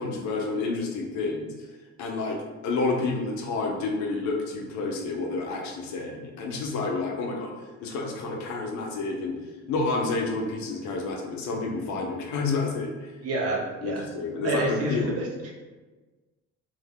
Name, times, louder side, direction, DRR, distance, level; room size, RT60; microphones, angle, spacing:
voice 1, 0.0-1.5 2.0-7.5 7.8-9.4 9.7-13.1 13.8-15.2, left 3 dB, 75° left, 0 dB, 0.7 m, -29 dB
voice 2, 13.2-14.1 14.4-15.3, right 1 dB, 50° right, -2 dB, 0.8 m, -28 dB
2.6 x 2.1 x 3.5 m, 1.3 s
cardioid pair, 130°, 29 cm